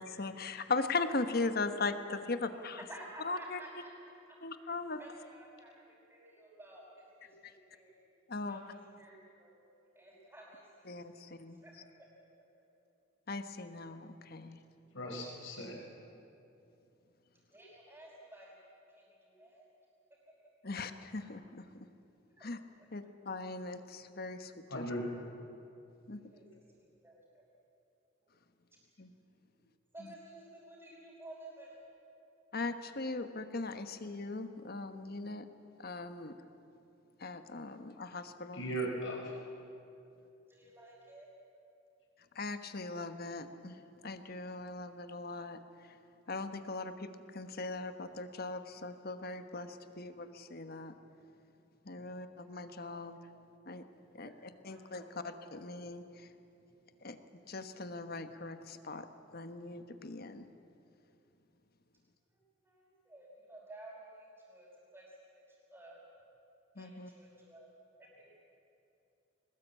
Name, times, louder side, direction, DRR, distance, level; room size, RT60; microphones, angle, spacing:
voice 1, 0.0-2.8 3.2-3.6 4.4-5.0 7.4-7.5 8.3-8.6 10.9-11.6 13.3-14.6 20.6-21.8 22.4-22.6 22.9-24.9 26.1-26.2 29.0-29.1 32.5-35.5 35.8-36.3 37.2-38.6 42.3-43.7 44.0-45.6 46.3-50.9 51.8-53.2 53.7-53.8 54.1-54.3 54.6-56.0 57.0-57.2 57.5-59.1 59.3-60.5 66.8-67.1, left 3 dB, 50° left, 9 dB, 1.2 m, -39 dB
voice 2, 2.8-3.9 4.3-4.4 5.0-5.7 6.1-7.9 8.5-9.6 10.0-11.3 11.6-11.7 15.1-15.2 17.5-18.6 18.9-19.7 21.1-21.2 22.4-22.5 26.2-26.6 27.0-27.5 29.9-31.7 40.5-41.3 51.9-52.4 52.9-53.0 54.0-54.4 54.6-55.3 56.9-57.4 59.4-60.2 62.3-65.1 65.5-66.0 66.8-67.7 68.0-68.4, right 1 dB, 10° right, -10 dB, 5.2 m, -54 dB
voice 3, 14.9-15.7 24.7-25.1 38.5-39.4, right 1 dB, 75° left, 1 dB, 5.0 m, -37 dB
22.5 x 20.0 x 8.5 m, 2.8 s
head